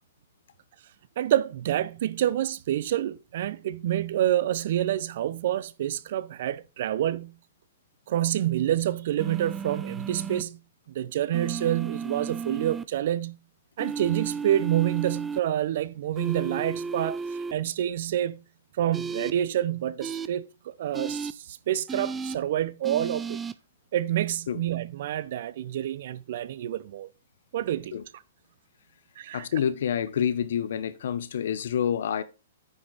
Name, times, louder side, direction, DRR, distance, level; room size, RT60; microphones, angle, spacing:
voice 1, 1.2-7.4 8.1-10.6 10.9-13.4 13.8-18.4 18.8-23.4 23.9-27.1 27.5-28.0 29.2-29.5, right 12 dB, 60° right, 0.7 m, -28 dB
sound 1, 9.2-10.4 11.3-12.8 13.8-15.4 16.2-17.5 18.9-19.3 20.0-20.3 20.9-21.3 21.9-22.4 22.8-23.5, right 5 dB, 15° right, 0.5 m, -34 dB
voice 2, 29.3-32.2, left 8 dB, 70° left, 0.9 m, -28 dB
9.5 x 5.9 x 4.0 m
hypercardioid pair, 125°, 0 cm